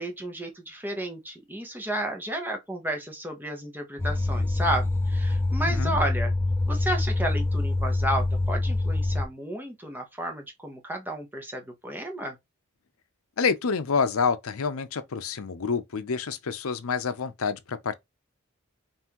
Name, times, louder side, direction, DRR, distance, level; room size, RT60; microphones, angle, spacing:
voice 1, 0.0-6.3 6.7-12.4, right 1 dB, 10° right, 0.9 m, -32 dB
sound 1, 4.0-9.3, left 2 dB, 10° left, 0.4 m, -25 dB
voice 2, 13.4-17.9, left 5 dB, 70° left, 0.6 m, -28 dB
5.5 x 2.6 x 2.9 m
head